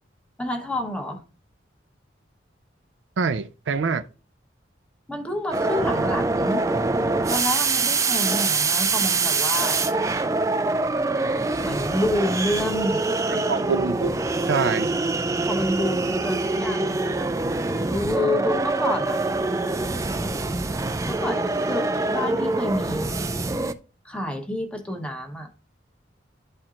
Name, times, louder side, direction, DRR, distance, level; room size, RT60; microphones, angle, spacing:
voice 1, 0.4-1.2 5.1-6.7 7.3-9.8 11.6-13.0 15.5-17.3 17.9-19.2 21.1-23.3 24.0-25.5, left 1 dB, 5° left, 1.0 m, -28 dB
voice 2, 3.2-4.0 13.3-14.1 14.4-14.9, right 5 dB, 80° right, 0.4 m, -25 dB
sound 1, 5.5-23.7, right 3 dB, 15° right, 0.3 m, -24 dB
12.0 x 4.4 x 2.5 m
head